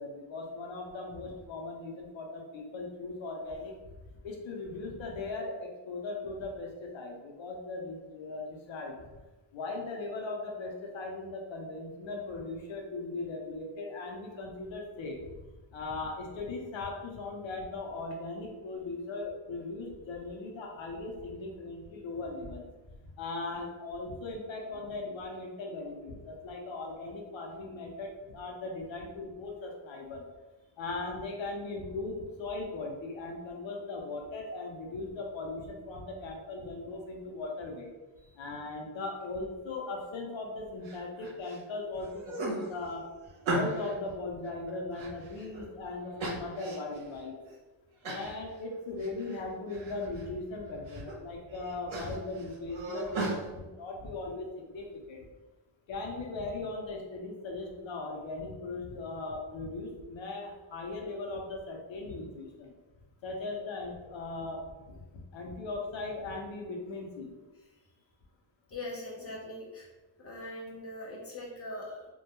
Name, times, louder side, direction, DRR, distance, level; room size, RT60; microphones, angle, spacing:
voice 1, 0.0-3.7 4.2-9.0 9.5-15.2 15.7-22.7 23.2-30.2 30.8-37.9 38.4-43.0 43.5-47.4 48.0-55.2 55.9-62.7 63.2-64.6 64.9-67.3, left 3 dB, 80° left, 0 dB, 0.6 m, -38 dB
Wounded man, 40.8-41.6 42.0-44.0 44.4-45.6 46.2-47.0 47.4-47.5 48.0-48.4 48.7-49.4 49.7-50.2 50.7-51.1 51.5-53.4, right 2 dB, 85° right, 0.8 m, -37 dB
voice 2, 68.7-69.9 70.2-72.1, left 1 dB, 30° left, -3 dB, 0.5 m, -41 dB
2.2 x 2.1 x 2.8 m, 1.2 s
wide cardioid pair, 175°, 46 cm